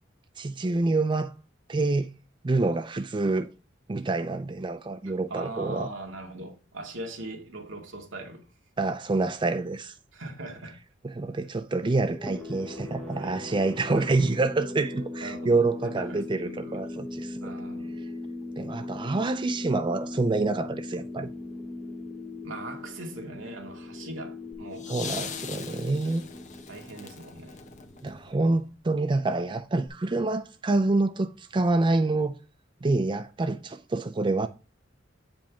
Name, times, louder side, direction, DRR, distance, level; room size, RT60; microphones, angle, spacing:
voice 1, 0.4-1.3 1.7-2.1 2.4-3.5 3.9-5.9 8.8-9.9 11.0-17.4 18.6-21.3 24.9-26.2 28.0-32.4 32.8-34.5, right 3 dB, 25° right, 0.4 m, -27 dB
voice 2, 5.1-8.4 10.1-10.8 13.2-13.4 13.8-14.1 15.2-17.0 17.4-18.0 22.4-24.9 26.7-27.6, right 2 dB, 85° right, 2.2 m, -40 dB
sound 1, 12.1-28.4, left 2 dB, 5° left, 1.2 m, -39 dB
sound 2, 24.5-28.7 29.9-30.0, left 6 dB, 40° left, 1.1 m, -41 dB
8.8 x 5.2 x 3.5 m
head